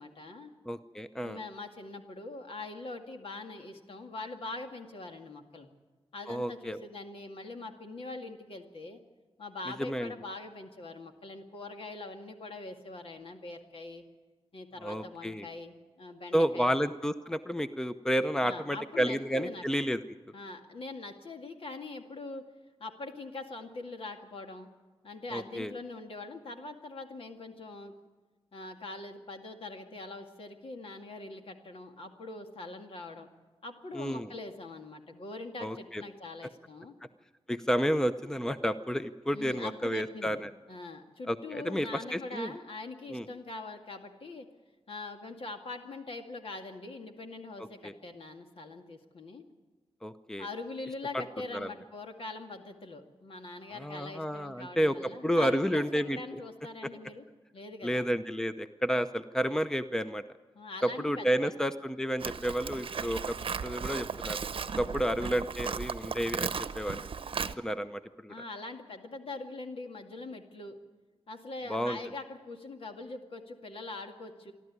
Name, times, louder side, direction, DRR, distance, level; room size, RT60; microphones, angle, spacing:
voice 1, 0.0-0.5 1.2-5.7 6.1-9.0 9.4-14.0 14.5-16.7 18.4-19.6 20.3-22.5 22.8-24.7 25.0-27.9 28.5-33.3 33.6-36.9 39.3-40.4 40.7-44.5 44.9-49.4 50.4-57.2 57.5-58.0 60.5-61.5 64.7-65.3 68.3-70.8 71.3-74.5, left 2 dB, 65° left, 4 dB, 2.2 m, -43 dB
voice 2, 0.6-1.4 6.3-6.8 9.8-10.1 14.8-15.5 16.3-20.0 25.3-25.7 33.9-34.3 35.6-36.0 37.5-40.5 41.3-42.5 43.1-43.3 47.6-47.9 50.0-50.5 51.5-51.7 53.8-56.4 57.8-60.2 60.8-63.4 63.6-64.4 64.8-67.1 67.6-68.3 71.7-72.0, equal, 5° left, 11 dB, 0.7 m, -31 dB
Livestock farm animals working animals, 62.2-67.5, right 6 dB, 60° right, 0.8 m, -36 dB
26.5 x 12.0 x 9.6 m, 1.3 s
wide cardioid pair, 95°, 10 cm